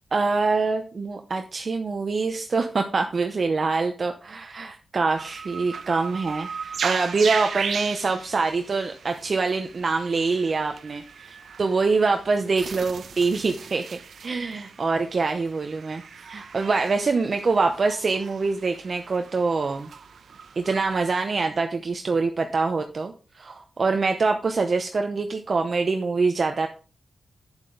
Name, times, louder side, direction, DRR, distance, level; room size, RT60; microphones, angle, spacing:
voice 1, 0.1-19.9 20.6-26.7, right 4 dB, 45° right, 5 dB, 0.8 m, -25 dB
sound 1, 5.1-21.0, right 6 dB, 75° right, 0.8 m, -37 dB
9.0 x 7.4 x 4.0 m, 0.36 s
wide cardioid pair, 110°, 0 cm